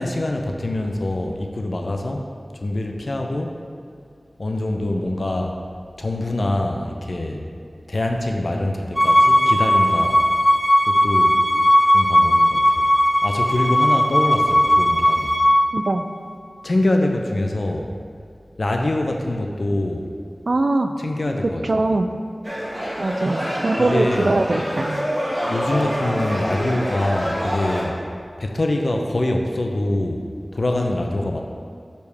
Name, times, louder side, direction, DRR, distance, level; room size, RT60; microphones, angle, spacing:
voice 1, 0.0-2.2 2.5-3.6 4.4-5.6 6.0-7.5 7.9-10.2 10.9-11.4 11.9-12.9 13.2-15.4 16.6-17.9 18.6-20.1 21.0-21.9 23.8-24.4 25.5-28.0 28.4-31.4, left 1 dB, 60° left, 2 dB, 0.6 m, -24 dB
Bowed string instrument, 9.0-15.5, equal, 15° left, 1.0 m, -17 dB
voice 2, 15.7-16.1 20.5-21.0 21.4-22.1 23.0-25.1, right 2 dB, 65° right, 6 dB, 0.3 m, -22 dB
sound 1, 22.4-27.8, equal, 20° right, 1.5 m, -26 dB
6.4 x 5.2 x 3.4 m, 2.3 s
wide cardioid pair, 70°, 0 cm